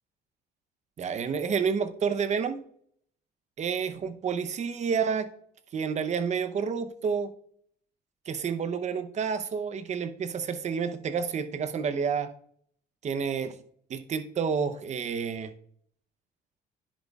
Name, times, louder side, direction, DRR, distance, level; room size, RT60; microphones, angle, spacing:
voice 1, 1.0-2.6 3.6-5.3 5.7-7.3 8.3-12.3 13.0-13.6 13.9-15.5, right 6 dB, 45° right, 10 dB, 0.8 m, -29 dB
10.0 x 8.1 x 2.4 m, 0.63 s
cardioid pair, 110°, 17 cm